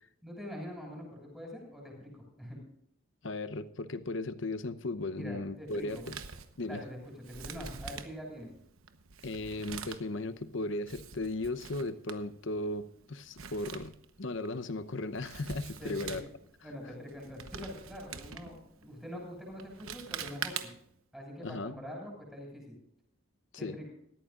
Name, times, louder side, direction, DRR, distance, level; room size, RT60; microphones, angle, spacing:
voice 1, 0.2-2.6 5.1-6.1 6.6-8.5 15.8-16.2 16.6-20.7 21.1-22.8 23.6-23.9, equal, 5° right, -1 dB, 6.6 m, -44 dB
voice 2, 3.2-6.1 6.6-6.8 9.2-13.9 14.2-16.2 21.4-21.8 23.6-23.8, left 2 dB, 60° left, 12 dB, 0.8 m, -36 dB
Male speech man speaking, 5.7-21.0, right 7 dB, 85° right, 1.0 m, -46 dB
19.0 x 14.0 x 2.5 m, 0.72 s
head